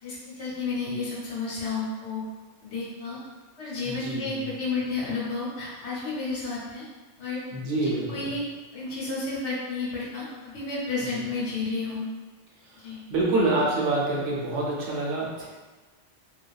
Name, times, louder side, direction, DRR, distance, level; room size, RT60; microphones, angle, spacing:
voice 1, 0.0-2.3 2.6-3.2 3.6-6.8 7.2-7.4 7.8-8.4 8.7-12.0 12.8-13.0, left 3 dB, 75° left, -6 dB, 1.1 m, -31 dB
voice 2, 3.8-4.5 7.5-8.2 12.7-12.8 13.1-15.5, right 2 dB, 80° right, -5 dB, 1.0 m, -26 dB
2.7 x 2.3 x 2.3 m, 1.3 s
omnidirectional pair, 1.2 m